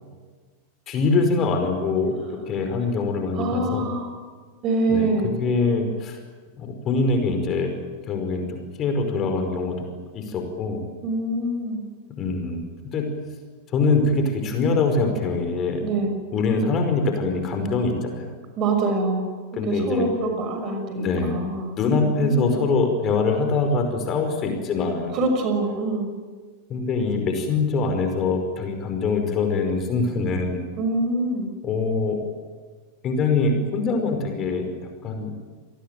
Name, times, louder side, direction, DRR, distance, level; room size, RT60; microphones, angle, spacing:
voice 1, 0.9-2.1 2.5-3.8 4.9-5.1 5.4-6.2 6.6-7.7 8.1-9.9 10.1-10.8 12.2-12.6 12.9-13.0 13.7-15.8 16.3-18.3 19.5-20.1 20.9-21.4 21.8-25.2 26.7-30.6 31.6-32.2 33.0-34.7 35.0-35.3, left 3 dB, 30° left, 5 dB, 5.1 m, -23 dB
voice 2, 3.3-4.1 4.6-5.3 11.0-11.8 15.8-16.1 18.6-19.3 19.7-22.6 25.1-26.1 30.8-31.5, right 2 dB, 35° right, 6 dB, 6.0 m, -25 dB
28.5 x 19.0 x 9.2 m, 1.4 s
figure-of-eight pair, 90°, 0 cm